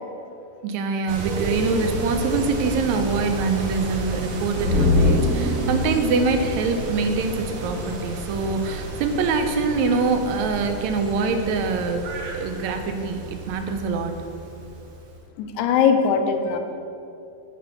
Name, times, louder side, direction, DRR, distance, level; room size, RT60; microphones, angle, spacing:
voice 1, 0.6-12.1 12.3-14.2, right 4 dB, 80° right, 6 dB, 1.9 m, -24 dB
sound 1, 1.1-15.1, right 2 dB, 65° right, 1.4 m, -31 dB
sound 2, 4.6-8.0 8.3-8.4, left 3 dB, 60° left, 1.4 m, -24 dB
voice 2, 15.4-16.6, left 6 dB, 90° left, 5 dB, 2.1 m, -20 dB
9.9 x 3.4 x 6.8 m, 2.7 s
omnidirectional pair, 3.4 m